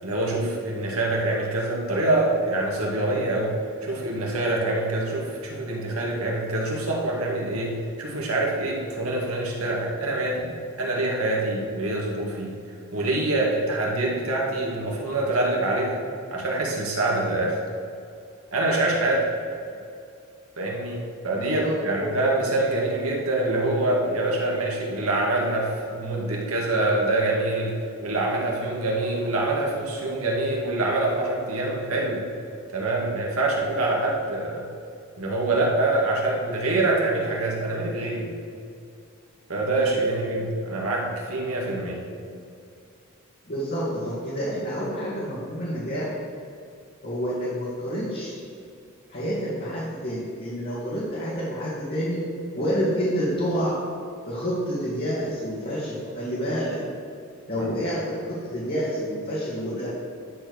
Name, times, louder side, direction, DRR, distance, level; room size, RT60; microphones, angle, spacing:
voice 1, 0.0-3.5 3.8-10.5 10.8-12.6 12.9-16.0 16.3-17.6 18.5-19.3 20.6-27.7 28.0-32.3 32.7-34.7 35.2-38.3 39.5-42.1, right 2 dB, 85° right, -2 dB, 2.0 m, -25 dB
voice 2, 21.4-22.2 43.5-46.1 47.0-48.4 49.1-52.2 52.5-53.8 54.2-56.8 57.5-59.9, equal, 50° left, -8 dB, 2.0 m, -28 dB
12.0 x 4.4 x 6.4 m, 2.5 s
head